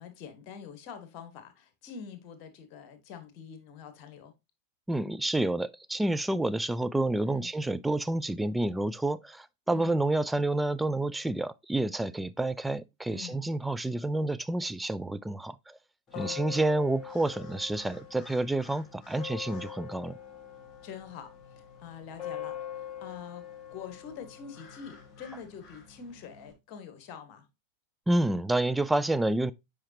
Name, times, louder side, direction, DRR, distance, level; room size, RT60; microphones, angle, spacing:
voice 1, 0.0-4.3 7.3-7.5 9.7-10.0 13.1-13.4 16.1-16.4 20.8-23.4 23.7-27.4, left 7 dB, 40° left, 1.6 m, -45 dB
voice 2, 4.9-15.8 16.2-20.2 28.1-29.5, right 2 dB, 5° right, 0.4 m, -29 dB
sound 1, 16.1-26.5, left 9 dB, 20° left, 2.4 m, -44 dB
8.6 x 4.9 x 2.8 m
figure-of-eight pair, 90°, 0 cm